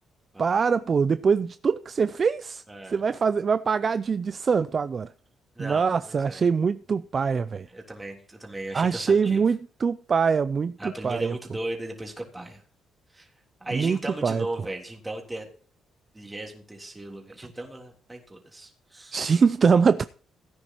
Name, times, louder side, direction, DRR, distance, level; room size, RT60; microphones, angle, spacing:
voice 1, 0.4-2.6 2.9-5.1 5.6-7.7 8.7-11.3 13.7-14.4 19.1-20.0, right 5 dB, 40° right, 0.4 m, -23 dB
voice 2, 2.7-3.0 5.6-6.5 7.7-9.4 10.8-12.6 13.1-13.3 13.6-15.5 16.1-19.2, right 1 dB, 15° right, 3.4 m, -37 dB
17.0 x 9.8 x 3.0 m
cardioid pair, 90°, 0 cm